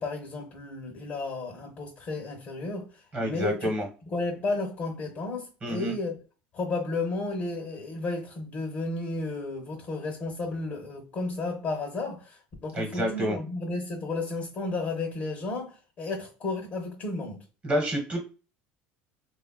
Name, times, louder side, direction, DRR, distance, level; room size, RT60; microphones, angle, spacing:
voice 1, 0.0-3.7 4.1-6.2 6.5-17.4, left 3 dB, 35° left, 0.7 m, -33 dB
voice 2, 3.1-3.9 5.6-5.9 12.7-13.4 17.6-18.2, equal, 30° right, 1.2 m, -28 dB
3.2 x 2.4 x 2.2 m
cardioid pair, 135°, 5 cm